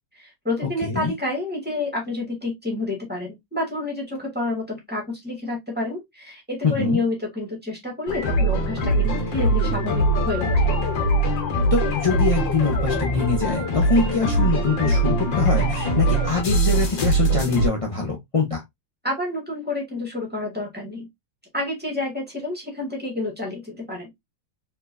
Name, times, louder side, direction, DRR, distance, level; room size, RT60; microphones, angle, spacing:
voice 1, 0.1-10.7 19.0-21.1 21.5-24.1, left 2 dB, 5° right, 2.1 m, -29 dB
voice 2, 0.8-1.1 6.6-7.0 11.7-18.6, left 4 dB, 35° left, 0.5 m, -24 dB
sound 1, 8.1-17.7, right 1 dB, 65° left, 1.9 m, -22 dB
4.5 x 3.8 x 2.6 m
omnidirectional pair, 2.2 m